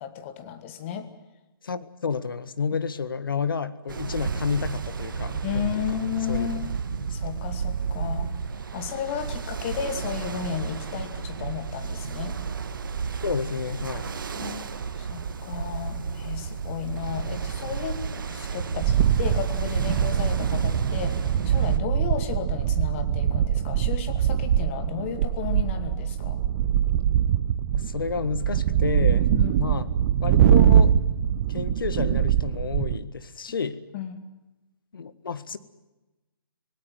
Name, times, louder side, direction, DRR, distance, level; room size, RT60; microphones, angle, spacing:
voice 1, 0.0-1.1 5.4-6.7 7.1-8.3 8.7-12.4 14.3-26.4 29.3-29.7 33.9-34.2, left 9 dB, 35° left, 8 dB, 2.4 m, -33 dB
voice 2, 1.6-5.8 6.3-6.5 13.2-14.1 27.7-29.3 29.6-29.9 30.2-30.9 31.5-33.8 34.9-35.6, left 5 dB, 65° left, 13 dB, 1.6 m, -30 dB
Ocean, 3.9-21.8, right 6 dB, 60° right, 1.7 m, -31 dB
sound 1, 18.8-33.0, right 9 dB, 35° right, 1.3 m, -23 dB
26.5 x 18.5 x 7.7 m, 1.1 s
figure-of-eight pair, 135°, 12 cm